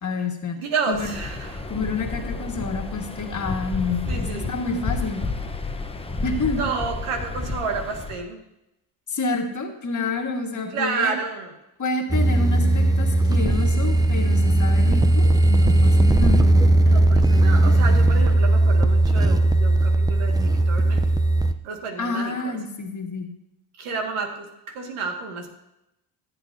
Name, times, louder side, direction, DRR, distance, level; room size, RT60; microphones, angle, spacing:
voice 1, 0.0-0.6 0.9-1.2 1.7-5.2 6.2-6.6 9.1-11.1 11.8-16.4 16.8-17.0 22.0-23.3, left 3 dB, 35° left, 3 dB, 1.7 m, -28 dB
voice 2, 0.6-1.7 4.1-4.5 6.5-8.4 10.7-11.5 16.8-21.0 21.6-22.6 23.8-25.5, right 5 dB, 75° right, 3 dB, 2.0 m, -30 dB
Waves surf, 0.9-8.2, left 3 dB, 10° left, 0.9 m, -31 dB
Digital Takeoff, 12.1-21.5, right 2 dB, 10° right, 0.5 m, -18 dB
14.5 x 8.0 x 2.7 m, 0.89 s
supercardioid pair, 80°, 50 cm